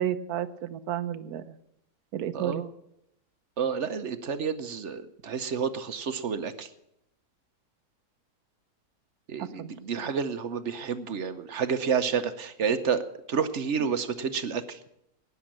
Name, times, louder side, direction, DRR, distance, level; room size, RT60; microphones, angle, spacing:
voice 1, 0.0-1.5 2.1-2.6 9.4-9.7, right 10 dB, 85° right, 13 dB, 1.3 m, -32 dB
voice 2, 2.3-2.7 3.6-6.7 9.3-14.8, right 6 dB, 55° right, 10 dB, 1.1 m, -30 dB
19.0 x 7.1 x 7.6 m, 0.79 s
omnidirectional pair, 1.6 m